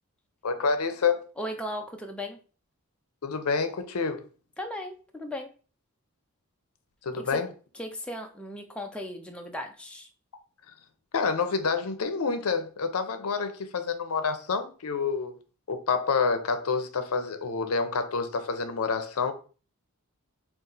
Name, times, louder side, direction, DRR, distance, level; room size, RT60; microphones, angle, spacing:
voice 1, 0.4-1.3 3.2-4.2 7.0-7.5 11.1-15.3 15.7-19.3, left 5 dB, 75° left, 0.6 m, -28 dB
voice 2, 1.4-2.4 4.6-5.5 7.3-7.4 7.8-10.1, left 1 dB, 5° left, 0.4 m, -36 dB
4.1 x 2.4 x 3.8 m
head